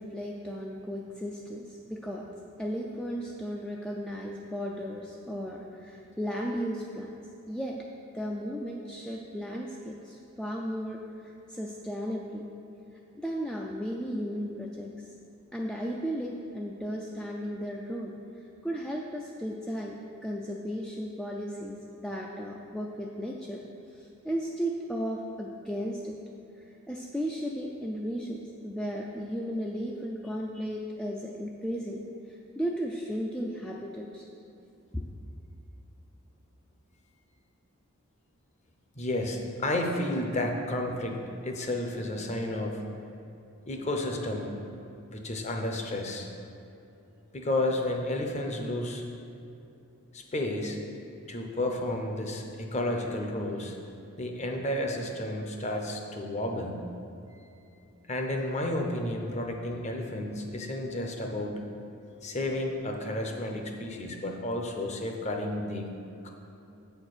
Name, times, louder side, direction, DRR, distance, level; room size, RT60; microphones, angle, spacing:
voice 1, 0.0-2.3 2.6-7.1 7.5-7.8 8.1-11.0 11.5-12.5 13.2-14.9 15.5-18.2 18.6-20.0 20.2-23.6 24.2-26.1 26.9-28.4 28.6-32.0 32.6-34.2 34.9-35.1, equal, 5° left, -2 dB, 0.4 m, -35 dB
voice 2, 39.0-42.9 43.7-44.5 45.1-46.3 47.3-49.0 50.1-50.8 51.3-53.8 54.2-56.8 58.1-61.6 62.2-65.9 66.2-66.3, left 1 dB, 30° left, 2 dB, 0.7 m, -31 dB
8.0 x 4.4 x 6.6 m, 2.8 s
head